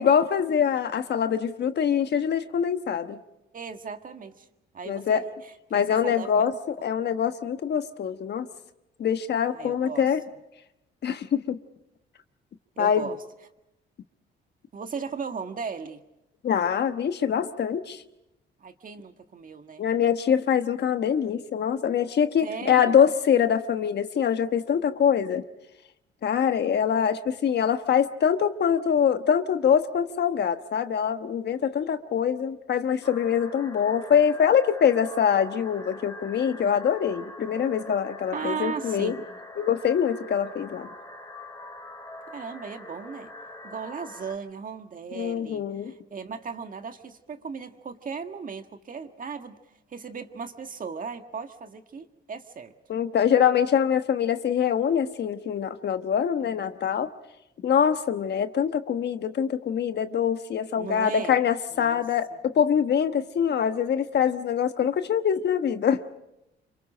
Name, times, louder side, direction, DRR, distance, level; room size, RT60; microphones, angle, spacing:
voice 1, 0.0-3.2 4.9-5.3 5.7-6.5 6.8-8.5 9.0-10.2 11.0-11.6 12.8-13.1 16.4-18.0 19.8-25.4 26.2-39.1 39.6-40.9 45.1-45.9 52.9-57.1 57.6-66.0, left 8 dB, 60° left, 9 dB, 1.2 m, -24 dB
voice 2, 3.5-4.5 4.7-6.5 9.5-10.1 12.8-13.2 14.7-16.0 18.6-19.8 22.4-23.0 38.3-39.2 42.3-43.3 43.6-49.6 49.9-52.7 60.8-61.3 61.7-62.0, right 5 dB, 45° right, 7 dB, 1.7 m, -37 dB
sound 1, 33.0-44.3, left 1 dB, 20° left, 3.2 m, -43 dB
28.0 x 25.5 x 5.0 m, 0.87 s
cardioid pair, 90°, 20 cm